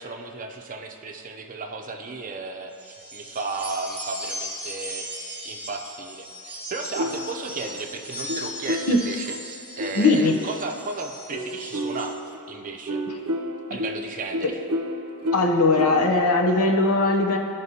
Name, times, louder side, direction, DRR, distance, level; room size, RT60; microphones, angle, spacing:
voice 1, 0.0-5.1 5.4-12.2 12.5-13.0 13.7-14.5, right 3 dB, 40° right, 3 dB, 0.6 m, -34 dB
sound 1, 2.7-12.1, equal, 5° right, 0.9 m, -38 dB
sound 2, 7.0-10.8 11.3-16.2, equal, 80° right, 0.6 m, -32 dB
voice 2, 9.9-10.4 13.1-13.2 15.3-17.4, left 2 dB, 75° left, 2 dB, 0.8 m, -19 dB
12.5 x 5.1 x 2.8 m, 2.6 s
head